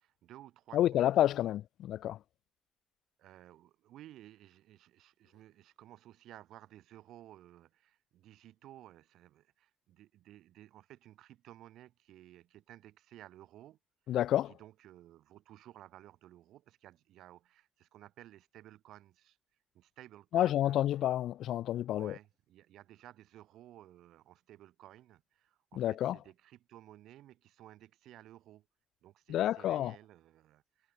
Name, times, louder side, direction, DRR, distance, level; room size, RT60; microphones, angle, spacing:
voice 1, 0.0-1.5 3.2-13.8 14.1-14.2 14.5-19.4 19.7-20.8 22.0-28.7 29.0-30.9, right 13 dB, 80° right, 3.7 m, -56 dB
voice 2, 0.7-2.2 14.1-14.5 20.3-22.1 25.8-26.2 29.3-29.9, left 12 dB, 80° left, 0.4 m, -29 dB
cardioid pair, 90°, 0 cm